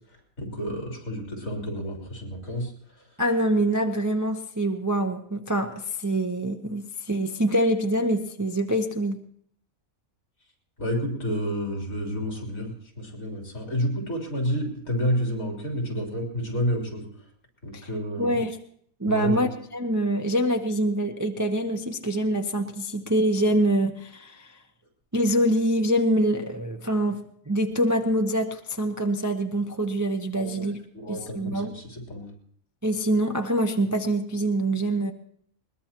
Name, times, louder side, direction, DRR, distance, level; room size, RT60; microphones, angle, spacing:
voice 1, 0.4-2.7 10.8-17.1 17.6-18.4 19.1-19.4 30.4-30.7 30.9-32.3, equal, 70° left, 0 dB, 3.9 m, -30 dB
voice 2, 3.2-9.2 17.7-17.9 18.2-18.6 19.0-24.5 25.1-30.8 31.1-31.7 32.8-35.1, right 1 dB, 20° right, 4 dB, 0.5 m, -25 dB
21.0 x 20.5 x 2.9 m, 0.64 s
omnidirectional pair, 1.5 m